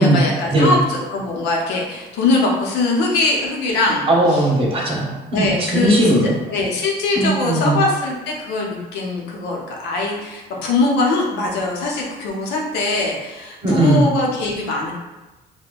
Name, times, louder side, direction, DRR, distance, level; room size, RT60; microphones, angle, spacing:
voice 1, 0.0-4.4 5.3-6.0 6.5-14.9, left 2 dB, 90° left, -1 dB, 0.7 m, -21 dB
voice 2, 4.1-6.3 7.2-7.8 13.6-14.1, right 1 dB, 35° right, -2 dB, 0.9 m, -17 dB
4.2 x 2.2 x 2.3 m, 1.1 s
cardioid pair, 110°, 17 cm